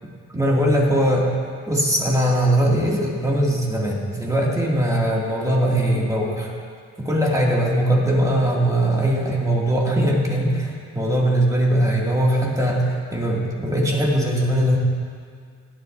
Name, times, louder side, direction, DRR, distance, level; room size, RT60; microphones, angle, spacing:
voice 1, 0.3-1.3 1.7-6.5 7.0-14.8, right 1 dB, 10° right, -4 dB, 2.2 m, -20 dB
17.0 x 9.0 x 2.6 m, 2.1 s
cardioid pair, 90°, 30 cm